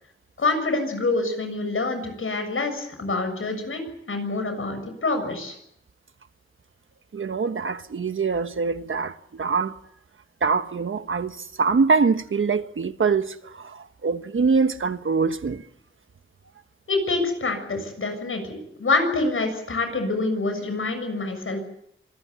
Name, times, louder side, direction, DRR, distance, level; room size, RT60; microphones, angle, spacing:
voice 1, 0.4-5.6 16.9-21.6, left 3 dB, 80° left, 7.0 m, -26 dB
voice 2, 7.1-9.7 10.4-15.6, right 5 dB, 75° right, 1.3 m, -24 dB
26.5 x 20.0 x 8.4 m
wide cardioid pair, 100°, 21 cm